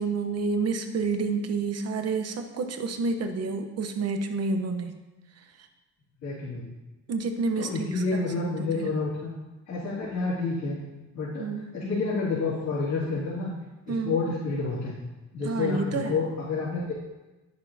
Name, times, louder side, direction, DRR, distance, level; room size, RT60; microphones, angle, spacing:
voice 1, 0.0-5.0 5.4-5.5 7.1-8.2 8.6-8.9 11.4-11.7 13.9-14.2 15.4-16.2, right 4 dB, 55° right, 7 dB, 0.9 m, -29 dB
voice 2, 6.2-6.6 7.6-9.3 9.7-10.8 11.1-11.5 11.7-13.5 13.9-14.9 15.3-16.9, left 3 dB, 65° left, -10 dB, 2.8 m, -29 dB
10.5 x 6.5 x 2.8 m, 1.1 s
cardioid pair, 90°, 30 cm